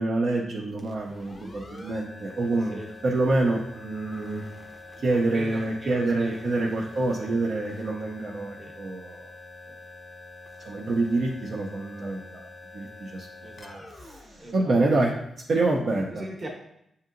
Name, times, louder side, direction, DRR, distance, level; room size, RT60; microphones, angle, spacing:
voice 1, 0.0-2.8 3.0-4.4 5.0-9.3 10.7-12.5 12.7-13.3 14.0-15.1 15.5-16.2, right 2 dB, 50° right, -3 dB, 0.6 m, -26 dB
sound 1, 0.7-15.3, left 2 dB, 25° left, 0.5 m, -46 dB
voice 2, 5.0-6.7 7.2-7.3 8.6-8.7 13.4-14.1 14.4-14.8 16.1-16.5, right 1 dB, 25° right, -1 dB, 0.9 m, -40 dB
7.7 x 2.7 x 2.5 m, 0.78 s
wide cardioid pair, 160°, 0 cm